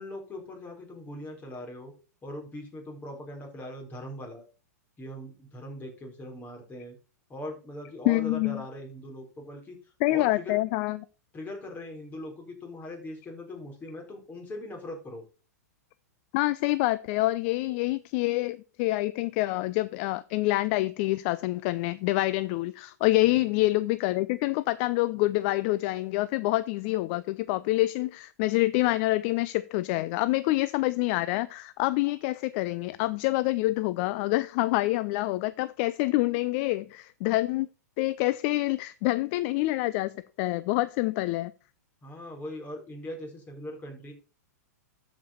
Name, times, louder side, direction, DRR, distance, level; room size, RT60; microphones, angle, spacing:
voice 1, 0.0-1.9 2.2-4.4 5.0-7.0 7.3-9.8 10.1-10.6 11.3-15.2 23.2-23.5 42.0-44.1, left 1 dB, 20° left, 1 dB, 4.0 m, -40 dB
voice 2, 8.1-8.6 10.0-11.0 16.3-37.7 38.0-41.5, left 19 dB, 45° left, 16 dB, 0.4 m, -27 dB
13.0 x 5.2 x 4.3 m, 0.34 s
hypercardioid pair, 110°, 9 cm